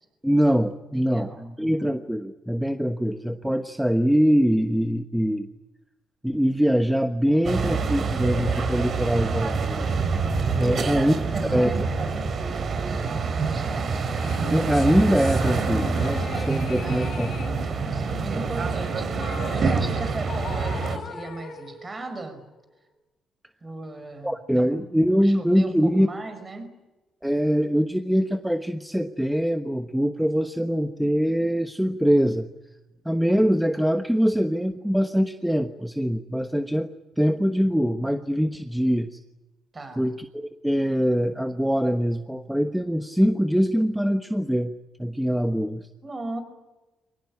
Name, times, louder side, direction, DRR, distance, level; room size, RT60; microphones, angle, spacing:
voice 1, 0.2-1.3 1.6-5.5 6.2-9.9 10.6-11.1 11.5-11.9 14.5-17.3 24.2-26.1 27.2-32.5 33.0-36.9 37.2-39.2 40.0-44.7 45.0-45.8, equal, 5° right, 7 dB, 1.2 m, -23 dB
voice 2, 0.9-1.5 7.2-7.8 10.6-12.2 12.8-13.2 13.4-14.0 16.8-22.4 23.6-24.7 25.2-26.8 39.7-40.1 46.0-46.4, right 2 dB, 30° right, 9 dB, 5.2 m, -37 dB
sound 1, 7.4-21.0, right 4 dB, 50° right, 3.3 m, -26 dB
sound 2, 14.2-22.8, left 6 dB, 65° left, 4.7 m, -39 dB
24.5 x 19.5 x 9.8 m, 1.1 s
cardioid pair, 90°, 0 cm